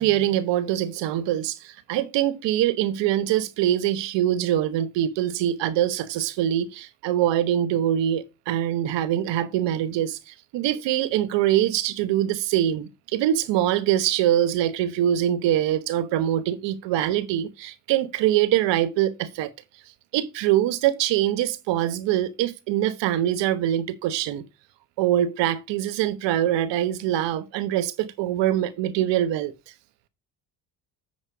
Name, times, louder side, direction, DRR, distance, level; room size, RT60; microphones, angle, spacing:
voice 1, 0.0-19.5 20.1-24.4 25.0-29.5, right 12 dB, 80° right, 1.1 m, -24 dB
9.5 x 4.4 x 4.6 m
supercardioid pair, 80°, 42 cm